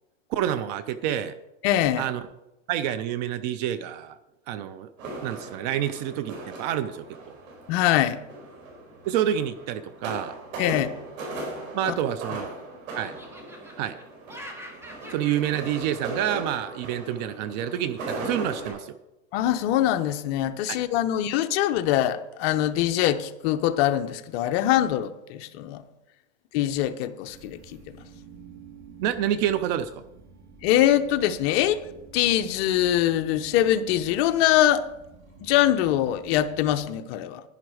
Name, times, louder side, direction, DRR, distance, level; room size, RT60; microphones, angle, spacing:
voice 1, 0.3-1.3 2.0-2.2 2.7-4.2 4.5-4.9 5.2-7.0 9.1-10.3 11.7-12.5 12.9-13.2 13.8-14.0 15.1-19.0 20.7-20.8 29.0-30.0, right 10 dB, 35° right, 0.4 m, -28 dB
voice 2, 1.6-2.1 7.7-8.2 10.6-10.9 11.9-12.0 19.3-25.8 26.5-27.8 30.6-31.8 32.1-34.8 35.4-37.4, left 12 dB, 50° left, 0.8 m, -23 dB
sound 1, 5.0-18.7, right 2 dB, 80° right, 5.0 m, -38 dB
Laughter, 11.8-12.6 13.0-17.4, equal, 5° right, 1.3 m, -46 dB
sound 2, 27.3-36.8, right 6 dB, 55° right, 2.6 m, -49 dB
10.5 x 10.5 x 4.8 m
supercardioid pair, 145°, 40 cm